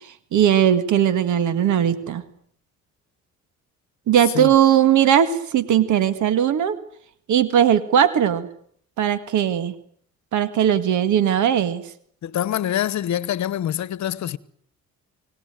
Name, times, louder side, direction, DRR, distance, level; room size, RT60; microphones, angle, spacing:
voice 1, 0.3-2.2 4.1-6.8 7.3-8.5 9.0-9.7 10.3-11.8, right 9 dB, 75° right, 1.9 m, -18 dB
voice 2, 12.2-14.4, left 11 dB, 65° left, 1.1 m, -25 dB
25.0 x 18.5 x 9.2 m
cardioid pair, 90°, 30 cm